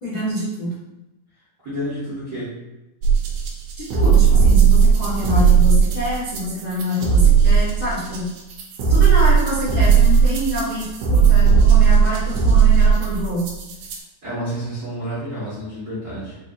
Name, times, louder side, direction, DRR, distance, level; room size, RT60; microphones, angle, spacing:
voice 1, 0.0-0.7 3.8-8.3 8.9-13.5, left 1 dB, 75° left, -10 dB, 0.8 m, -26 dB
voice 2, 1.6-2.5 14.2-16.4, equal, 70° right, -10 dB, 0.7 m, -29 dB
sound 1, 3.0-14.0, right 6 dB, 90° right, 2.6 m, -16 dB
7.2 x 2.8 x 2.5 m, 0.98 s
omnidirectional pair, 4.1 m